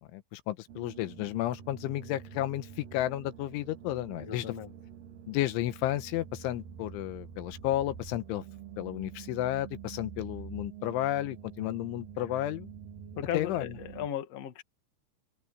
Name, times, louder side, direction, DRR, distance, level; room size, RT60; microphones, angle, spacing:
voice 1, 0.1-4.5 5.3-8.4 8.8-12.7 13.3-13.7, left 14 dB, 90° left, 3.6 m, -32 dB
sound 1, 0.7-14.1, right 8 dB, 65° right, 2.7 m, -47 dB
voice 2, 4.2-4.7 13.2-14.6, left 10 dB, 50° left, 2.1 m, -36 dB
open air
omnidirectional pair, 5.3 m